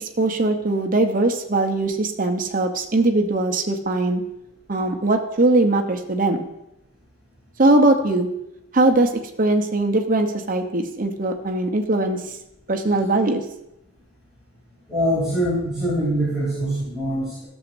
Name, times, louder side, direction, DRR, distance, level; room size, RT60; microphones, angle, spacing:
voice 1, 0.0-4.2 4.7-6.5 7.6-8.3 8.7-9.1 9.4-12.3 12.7-13.4, right 2 dB, 40° right, 4 dB, 0.8 m, -20 dB
voice 2, 14.9-17.5, equal, 5° right, -11 dB, 2.9 m, -23 dB
13.0 x 7.1 x 2.6 m, 0.84 s
head